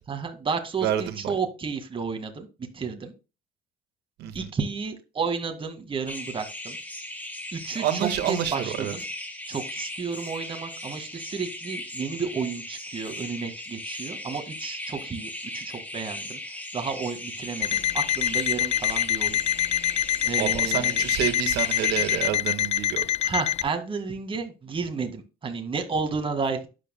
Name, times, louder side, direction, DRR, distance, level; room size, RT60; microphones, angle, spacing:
voice 1, 0.1-2.5 2.7-3.1 4.3-6.8 7.5-9.0 9.5-16.4 16.7-19.4 20.2-21.0 23.2-26.7, right 5 dB, 30° right, 1.9 m, -32 dB
voice 2, 0.8-1.3 4.2-4.5 7.8-8.9 20.4-23.0, right 11 dB, 75° right, 1.6 m, -28 dB
sound 1, 6.1-22.3, left 1 dB, 10° left, 3.4 m, -38 dB
Alarm, 17.6-23.7, left 11 dB, 40° left, 0.4 m, -25 dB
12.0 x 8.7 x 2.2 m
cardioid pair, 110°, 17 cm